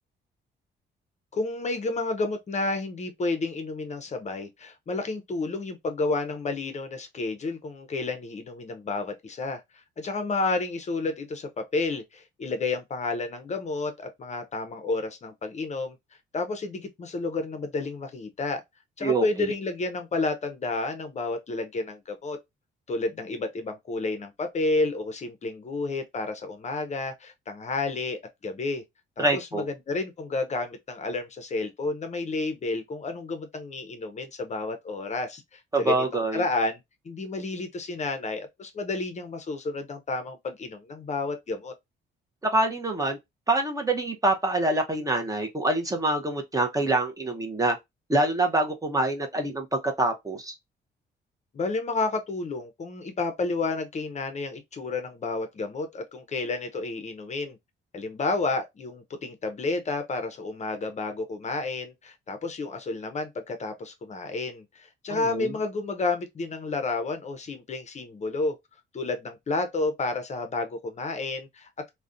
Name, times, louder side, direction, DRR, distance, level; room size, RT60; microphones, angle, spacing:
voice 1, 1.3-16.0 16.3-18.6 19.0-22.4 22.9-28.8 29.2-41.7 51.5-57.6 57.9-68.6 68.9-71.7, left 3 dB, 35° left, 0.5 m, -31 dB
voice 2, 19.0-19.5 29.2-29.6 35.7-36.4 42.5-43.2 43.5-47.8 48.1-50.5 65.1-65.6, right 2 dB, 15° right, 0.5 m, -26 dB
2.4 x 2.1 x 2.5 m
cardioid pair, 90°, 20 cm